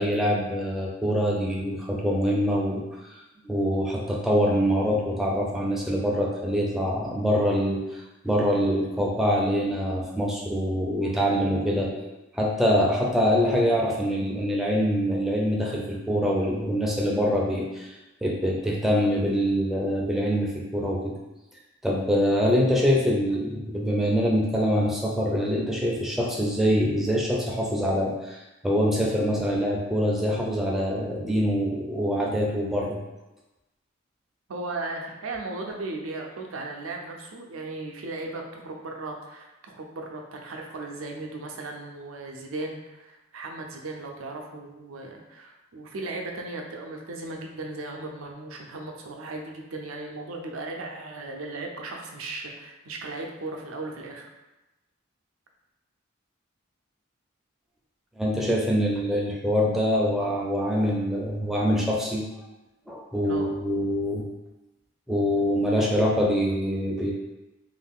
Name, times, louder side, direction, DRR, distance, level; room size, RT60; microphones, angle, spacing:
voice 1, 0.0-2.8 3.4-18.0 18.2-21.2 21.8-33.0 58.2-62.2 62.9-64.2 65.1-67.1, equal, ahead, -3 dB, 0.4 m, -24 dB
voice 2, 34.5-54.3 63.2-63.5, right 2 dB, 85° right, 1 dB, 0.5 m, -36 dB
2.5 x 2.3 x 3.5 m, 1.0 s
head